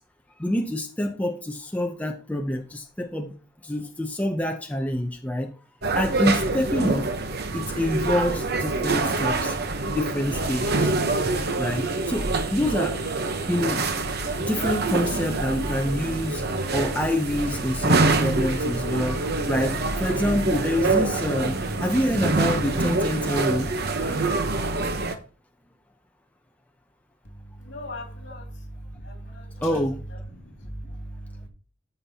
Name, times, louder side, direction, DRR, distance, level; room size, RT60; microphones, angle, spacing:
voice 1, 0.4-3.3 3.6-5.5 5.9-7.1 7.5-9.6 9.9-10.9 11.6-13.0 13.5-13.9 14.4-16.4 16.7-19.2 19.5-23.7 24.0-24.2 29.6-30.0, left 1 dB, 10° left, 3 dB, 0.6 m, -27 dB
sound 1, 5.8-25.2, right 3 dB, 55° right, 0.9 m, -25 dB
voice 2, 27.6-28.4 29.0-29.7 30.7-31.2, left 1 dB, 65° left, 1 dB, 2.6 m, -37 dB
13.5 x 5.5 x 2.9 m, 0.40 s
head